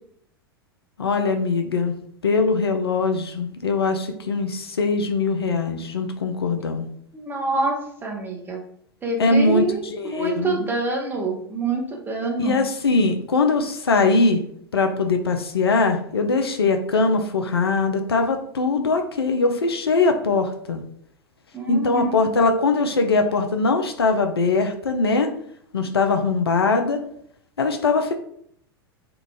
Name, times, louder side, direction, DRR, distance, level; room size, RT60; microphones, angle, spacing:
voice 1, 1.0-1.9 2.2-6.9 9.2-10.6 12.4-14.4 14.7-20.8 21.7-25.3 25.7-27.0 27.6-28.1, left 3 dB, 75° left, 5 dB, 0.5 m, -21 dB
voice 2, 7.1-8.6 9.0-12.6 21.5-22.3, right 2 dB, 15° right, 0 dB, 0.8 m, -26 dB
2.8 x 2.4 x 3.5 m, 0.66 s
figure-of-eight pair, 90°, 13 cm